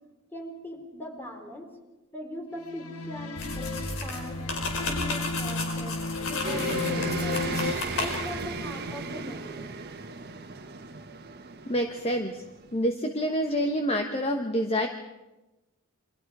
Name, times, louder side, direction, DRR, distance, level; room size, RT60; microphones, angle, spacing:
voice 1, 0.3-1.8 2.1-4.4 4.8-6.0 6.3-7.5 7.9-9.7, left 1 dB, 10° left, 2 dB, 3.9 m, -40 dB
sound 1, 2.6-7.7, left 3 dB, 90° left, 1.0 m, -33 dB
sound 2, 3.4-8.5, left 2 dB, 65° left, 5.1 m, -34 dB
sound 3, 6.4-12.9, right 3 dB, 50° right, 1.5 m, -36 dB
voice 2, 11.7-12.4 12.7-14.9, equal, 30° left, 4 dB, 1.2 m, -27 dB
28.5 x 24.5 x 4.9 m, 1.1 s
head